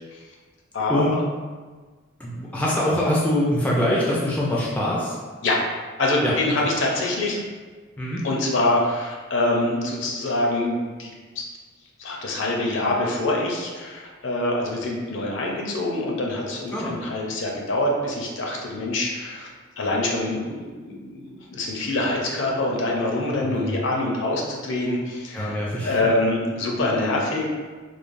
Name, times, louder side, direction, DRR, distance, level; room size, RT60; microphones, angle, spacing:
voice 1, 2.2-5.2 6.2-6.3 6.6-6.7 8.0-8.3 16.7-17.0 23.4-23.8 25.3-26.0, left 1 dB, 5° left, -5 dB, 0.3 m, -24 dB
voice 2, 6.0-7.4 8.2-11.1 11.4-11.5 12.0-19.5 19.8-25.5 25.8-27.5, left 2 dB, 65° left, -1 dB, 0.5 m, -25 dB
3.1 x 2.0 x 2.5 m, 1.4 s
head